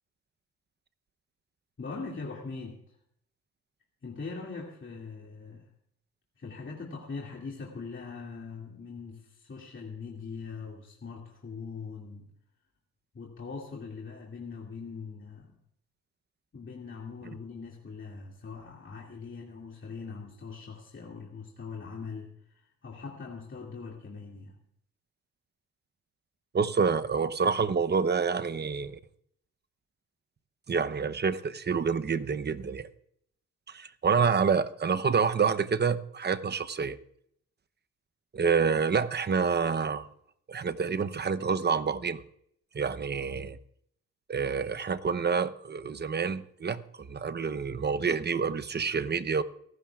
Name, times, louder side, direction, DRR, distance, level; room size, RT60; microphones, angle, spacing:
voice 1, 1.8-2.8 4.0-5.7 6.4-12.3 13.1-15.5 16.5-24.6, left 4 dB, 35° left, 2.5 m, -41 dB
voice 2, 26.5-29.0 30.7-32.9 33.7-37.0 38.3-40.1 40.5-42.2 42.7-43.6 44.3-49.4, right 5 dB, 30° right, 0.8 m, -28 dB
24.0 x 12.5 x 2.4 m
supercardioid pair, 55°, 34 cm